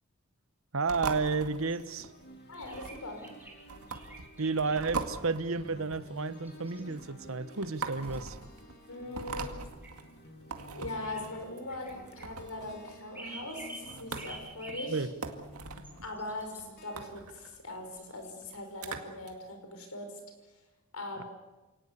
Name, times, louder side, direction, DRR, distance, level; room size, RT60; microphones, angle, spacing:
voice 1, 0.7-2.1 4.4-8.4 14.9-15.1, right 4 dB, 65° right, 1.1 m, -32 dB
sound 1, 0.8-19.3, right 4 dB, 90° right, 2.1 m, -42 dB
sound 2, 0.9-17.1, equal, 50° left, 3.0 m, -52 dB
sound 3, 1.0-1.2 1.7-1.9 2.7-3.6 3.9-4.8 6.3-7.2 7.8-8.5 9.3-9.6 9.8-9.9 10.9-11.2 11.7-12.3 13.1-13.9 14.1-14.9 15.8-16.6 18.0-18.4, right 2 dB, 10° right, 4.8 m, -48 dB
voice 2, 2.5-3.3 8.9-9.6 10.7-15.1 16.0-20.6 20.9-21.3, left 2 dB, 85° left, 5.3 m, -41 dB
28.5 x 18.5 x 8.3 m
head